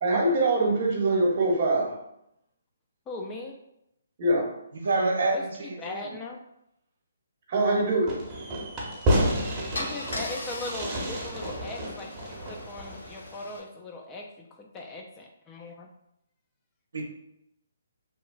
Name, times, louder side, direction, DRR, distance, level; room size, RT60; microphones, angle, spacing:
voice 1, 0.0-1.9 4.2-4.5 7.5-8.2, right 2 dB, 45° right, -1 dB, 0.8 m, -23 dB
voice 2, 3.1-3.5 5.3-6.4 9.8-15.9, left 2 dB, 20° left, 1 dB, 0.3 m, -39 dB
voice 3, 4.7-6.1 16.9-17.0, right 3 dB, 70° right, 1 dB, 0.5 m, -27 dB
Fireworks, 8.1-13.3, equal, 20° right, 0.7 m, -30 dB
Car / Engine starting / Idling, 9.0-9.2 9.7-13.6, left 1 dB, 70° left, 0.7 m, -39 dB
2.9 x 2.2 x 2.4 m, 0.80 s
figure-of-eight pair, 140°, 0 cm